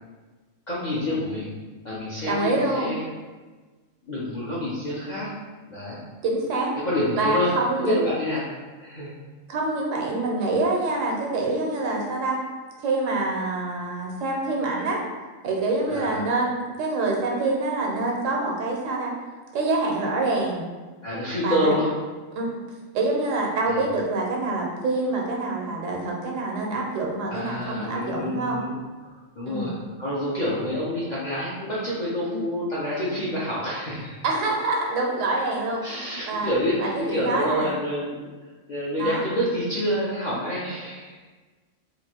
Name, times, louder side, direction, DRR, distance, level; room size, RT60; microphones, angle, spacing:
voice 1, 0.7-1.5 1.8-3.0 4.0-5.3 5.7-6.0 6.8-7.5 7.8-8.4 8.8-9.1 15.9-16.2 21.0-21.9 23.7-23.9 27.3-28.8 29.0-29.7 30.0-34.2 35.8-38.3 38.7-41.2, left 1 dB, 55° left, -8 dB, 0.5 m, -27 dB
voice 2, 2.2-2.9 6.2-6.7 7.2-8.0 9.5-12.4 12.8-15.0 15.4-19.1 19.5-20.6 21.4-21.8 22.3-22.6 22.9-28.6 29.5-29.7 34.2-35.8 36.3-36.5 36.8-37.7 39.0-39.2, right 2 dB, 80° right, -1 dB, 1.0 m, -26 dB
3.0 x 2.5 x 2.7 m, 1.3 s
omnidirectional pair, 1.3 m